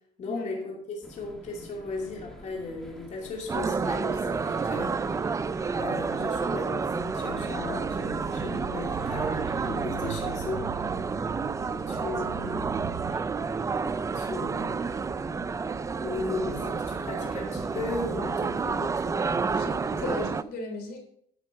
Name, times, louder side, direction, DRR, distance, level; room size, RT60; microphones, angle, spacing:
voice 1, 0.2-5.0 5.8-10.7 11.9-12.7 14.1-15.0 16.0-19.3, left 3 dB, 45° left, -1 dB, 2.6 m, -36 dB
sound 1, 1.0-20.3, equal, 5° left, 1.6 m, -45 dB
sound 2, 3.5-20.4, right 5 dB, 20° right, 0.3 m, -30 dB
sound 3, 6.6-13.2, right 9 dB, 65° right, 1.0 m, -41 dB
voice 2, 11.7-12.3 19.5-21.0, left 1 dB, 70° left, 3 dB, 3.0 m, -37 dB
10.5 x 7.3 x 4.6 m, 0.68 s
cardioid pair, 110°, 17 cm